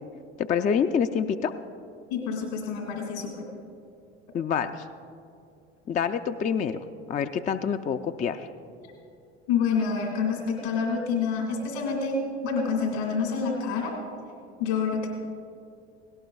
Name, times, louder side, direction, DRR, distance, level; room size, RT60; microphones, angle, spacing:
voice 1, 0.4-1.5 4.3-4.8 5.9-8.5, left 7 dB, 25° left, 8 dB, 0.4 m, -27 dB
voice 2, 2.1-3.4 9.5-12.2 12.4-14.0 14.6-15.1, left 5 dB, 70° left, 1 dB, 2.2 m, -27 dB
17.5 x 17.5 x 2.4 m, 2.5 s
hypercardioid pair, 70°, 34 cm